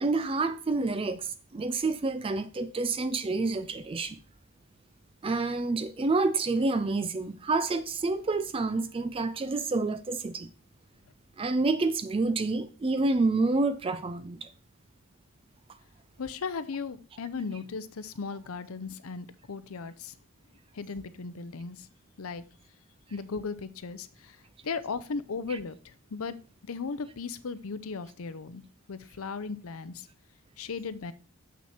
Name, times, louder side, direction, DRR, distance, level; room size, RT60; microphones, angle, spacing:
voice 1, 0.0-4.2 5.2-10.5 11.4-14.5 25.5-25.6, right 3 dB, 25° right, 0.3 m, -28 dB
voice 2, 16.2-20.1 20.7-21.9 22.2-22.4 23.1-24.4 24.6-26.4 26.6-28.6 28.9-30.1 30.6-31.1, left 4 dB, 80° left, 0.6 m, -36 dB
7.1 x 6.0 x 4.3 m
head